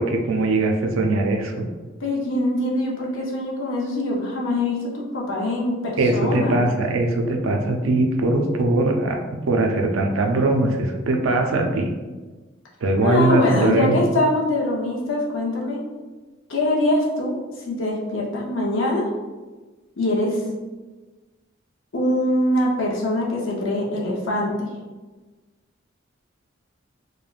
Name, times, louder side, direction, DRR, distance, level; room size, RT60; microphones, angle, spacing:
voice 1, 0.0-1.7 6.0-11.9 12.8-14.0, right 2 dB, 80° right, 3 dB, 0.4 m, -21 dB
voice 2, 2.0-6.6 13.0-15.8 16.5-17.3 17.7-19.1 20.0-20.4 21.9-24.5, left 1 dB, 70° left, -2 dB, 0.6 m, -23 dB
3.2 x 2.1 x 2.3 m, 1.3 s
head